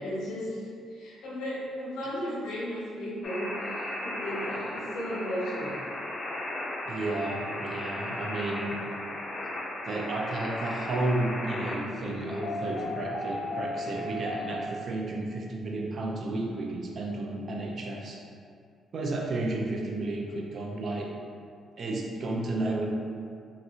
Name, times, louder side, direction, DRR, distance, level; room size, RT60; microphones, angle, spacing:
voice 1, 0.0-5.8, equal, 90° left, -7 dB, 0.8 m, -35 dB
sound 1, 3.2-14.6, left 1 dB, 45° left, 0.5 m, -35 dB
voice 2, 6.9-8.8 9.9-18.2 18.9-21.1 21.8-22.9, right 2 dB, 50° right, 0 dB, 0.4 m, -32 dB
3.0 x 2.5 x 2.7 m, 2.3 s
cardioid pair, 90°, 0 cm